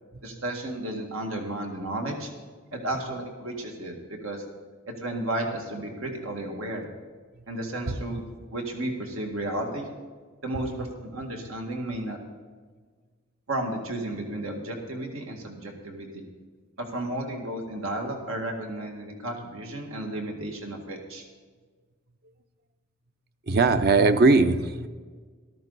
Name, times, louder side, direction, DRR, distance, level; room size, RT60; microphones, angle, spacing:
voice 1, 0.2-2.3 2.7-4.4 5.0-6.9 7.5-8.2 8.5-9.9 10.4-12.2 13.5-16.3 16.8-21.2, right 1 dB, 85° right, 2 dB, 2.0 m, -33 dB
voice 2, 7.9-8.2 10.5-10.7 23.5-24.9, right 3 dB, 50° right, 10 dB, 0.7 m, -21 dB
13.5 x 12.5 x 4.1 m, 1.5 s
head